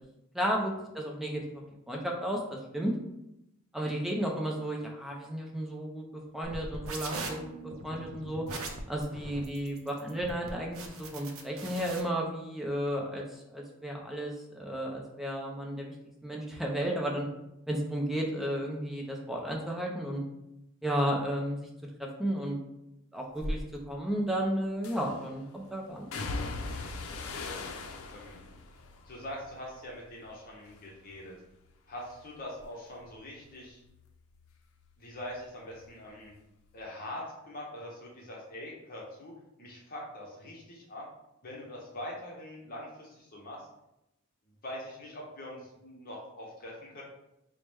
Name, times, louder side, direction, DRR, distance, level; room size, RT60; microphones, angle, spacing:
voice 1, 0.3-2.9 3.7-6.0 6.3-7.5 7.8-8.4 8.9-15.9 16.2-17.3 17.7-20.2 20.8-21.7 22.0-22.6 23.1-26.1, equal, ahead, -1 dB, 0.5 m, -33 dB
sound 1, 6.4-12.0, right 3 dB, 80° right, 0.6 m, -41 dB
sound 2, 23.4-23.6 24.8-25.3 26.1-30.3 30.7-31.3 31.7-34.9 35.2-36.3 36.6-36.8, left 2 dB, 85° left, 0.5 m, -40 dB
voice 2, 26.7-27.6 28.1-28.4 29.1-31.4 31.9-33.8 35.0-36.3 36.7-41.0 41.4-43.7 44.6-47.0, left 1 dB, 45° left, -3 dB, 0.8 m, -43 dB
4.6 x 2.1 x 3.4 m, 0.86 s
head